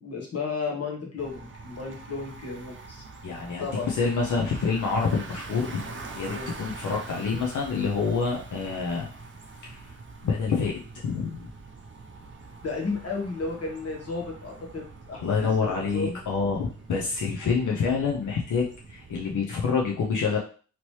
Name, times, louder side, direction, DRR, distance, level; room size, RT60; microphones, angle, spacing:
voice 1, 0.0-3.0 3.6-3.9 6.3-6.5 12.6-16.2 16.4-16.6, left 4 dB, 55° left, 0 dB, 1.1 m, -33 dB
Bicycle, 1.2-19.4, right 3 dB, 40° right, 0.6 m, -44 dB
voice 2, 3.2-9.1 9.6-9.8 10.2-11.5 15.2-20.4, left 5 dB, 85° left, -2 dB, 0.6 m, -27 dB
2.9 x 2.9 x 3.1 m, 0.40 s
wide cardioid pair, 95°, 30 cm